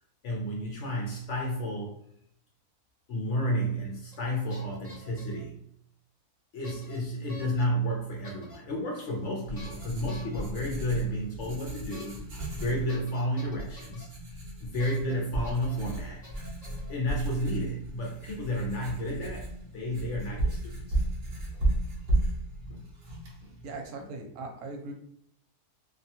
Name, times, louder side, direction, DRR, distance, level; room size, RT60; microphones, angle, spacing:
voice 1, 0.2-2.0 3.1-5.6 6.5-12.2 12.5-16.2 16.9-19.5 19.7-20.7 22.7-22.8 23.4-23.5, equal, 65° left, -1 dB, 0.8 m, -31 dB
sound 1, 4.1-4.2 4.5-5.4 6.6-7.0 7.3-7.6 8.2-8.6 9.6-10.4 11.9-12.1 12.4-12.5 12.9-14.0 14.8-15.1 15.4-15.8 16.2-16.9, equal, 35° left, 0.7 m, -49 dB
Writing, 9.1-23.9, right 2 dB, 55° right, 0.7 m, -34 dB
voice 2, 23.6-24.9, right 3 dB, 80° right, 2 dB, 1.1 m, -39 dB
2.6 x 2.2 x 2.7 m, 0.69 s
omnidirectional pair, 1.6 m